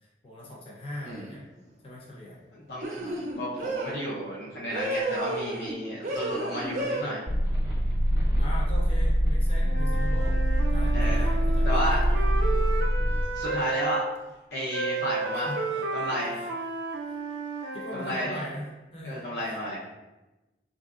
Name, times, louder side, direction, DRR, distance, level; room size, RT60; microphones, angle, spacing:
voice 1, 0.2-1.4 1.8-2.4 2.9-3.3 8.4-10.4 10.7-12.3 15.3-16.5 17.7-19.2, left 1 dB, 30° left, -4 dB, 0.7 m, -40 dB
sound 1, 1.0-1.4 2.8-4.0 4.7-5.7 6.0-7.0, right 1 dB, 45° right, 0.6 m, -32 dB
voice 2, 2.5-2.9 3.3-7.2 10.9-11.3 11.6-12.0 13.3-14.0 14.5-15.5 15.9-16.4 17.9-18.4 19.0-19.8, equal, 70° left, -7 dB, 0.7 m, -32 dB
sound 2, 7.3-13.2, equal, 20° right, 0.9 m, -24 dB
Wind instrument woodwind instrument, 9.6-14.0 14.7-18.4, right 4 dB, 90° right, 0.4 m, -33 dB
4.3 x 2.6 x 2.4 m, 1.1 s
head